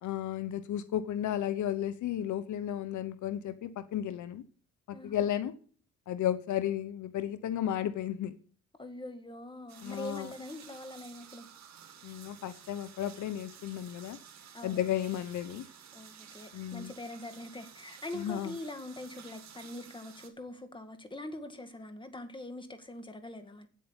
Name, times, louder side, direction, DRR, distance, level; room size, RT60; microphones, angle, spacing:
voice 1, 0.0-4.4 4.9-5.5 6.1-8.3 9.8-10.3 12.0-14.2 14.6-15.6 16.5-16.9 18.1-18.5, left 11 dB, 75° left, 13 dB, 1.0 m, -33 dB
voice 2, 4.9-5.2 8.8-11.5 14.5-14.9 15.9-23.7, left 1 dB, 15° left, 8 dB, 2.0 m, -43 dB
sound 1, 9.7-20.3, right 8 dB, 65° right, 2.4 m, -53 dB
9.3 x 8.5 x 8.2 m, 0.42 s
cardioid pair, 90°, 30 cm